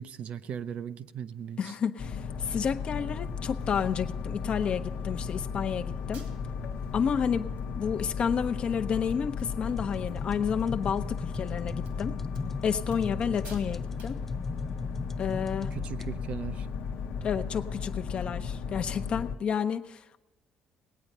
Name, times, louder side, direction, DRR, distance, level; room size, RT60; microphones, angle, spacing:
voice 1, 0.0-1.7 15.7-16.7, right 8 dB, 55° right, 11 dB, 0.6 m, -38 dB
voice 2, 1.6-6.3 6.9-12.2 12.6-14.2 15.2-15.7 17.2-20.2, left 7 dB, 45° left, 8 dB, 0.7 m, -30 dB
sound 1, 2.0-19.4, left 5 dB, 80° left, 0.9 m, -35 dB
sound 2, 5.6-5.7 6.1-6.7 7.2-7.3 7.6-8.1 8.4-8.5 8.8-8.9 9.1-10.1 10.4-10.7 11.3-11.4 11.8-12.0 12.3-12.5 12.9-13.2 13.4-13.7 14.0-14.2, right 4 dB, 85° right, 3.0 m, -55 dB
sound 3, 9.8-16.1, left 2 dB, 10° left, 0.4 m, -40 dB
19.0 x 8.9 x 5.4 m, 1.0 s
cardioid pair, 120°, 3 cm